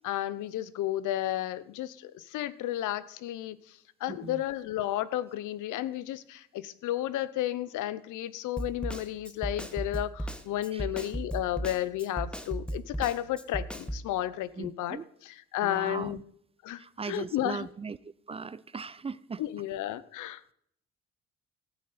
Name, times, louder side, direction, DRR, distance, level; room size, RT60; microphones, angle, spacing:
voice 1, 0.0-15.0 15.2-16.2 16.6-17.7 19.4-20.5, left 13 dB, 85° left, 0.7 m, -33 dB
voice 2, 4.1-4.4 10.7-10.9 14.6-15.0 15.6-16.2 16.8-19.4, right 5 dB, 20° right, 0.3 m, -39 dB
Snare drum, 8.6-14.1, right 1 dB, 5° left, 1.0 m, -35 dB
15.0 x 8.5 x 4.1 m
cardioid pair, 90°, 30 cm